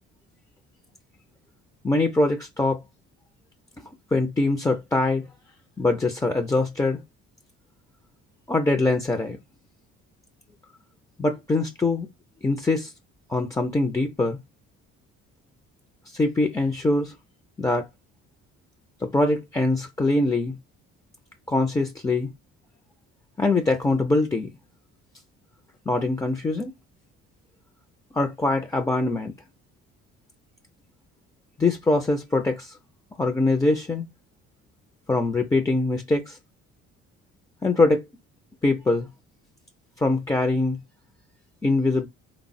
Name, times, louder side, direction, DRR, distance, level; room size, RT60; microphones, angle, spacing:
voice 1, 1.8-2.8 4.1-5.3 5.8-7.0 8.5-9.4 11.2-12.1 12.4-12.9 13.3-14.4 16.1-17.1 17.6-17.9 19.0-20.6 21.5-22.3 23.4-24.5 25.9-26.7 28.1-29.3 31.6-32.7 33.2-34.0 35.1-36.4 37.6-38.0 38.6-39.1 40.0-40.8 41.6-42.1, left 2 dB, 10° left, 0.3 m, -23 dB
3.4 x 2.0 x 2.5 m
supercardioid pair, 80°, 31 cm